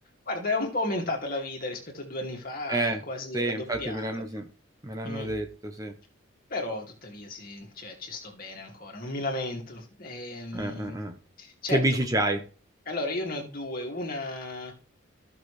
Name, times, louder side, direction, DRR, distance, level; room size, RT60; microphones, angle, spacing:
voice 1, 0.3-4.2 5.0-5.3 6.5-11.0 11.4-11.8 12.9-14.7, left 2 dB, 45° left, 0 dB, 2.3 m, -34 dB
voice 2, 2.7-3.0 3.3-4.5 4.8-5.9 10.5-11.2 11.7-12.4, right 1 dB, 15° right, 6 dB, 0.8 m, -28 dB
15.0 x 6.3 x 3.3 m, 0.37 s
head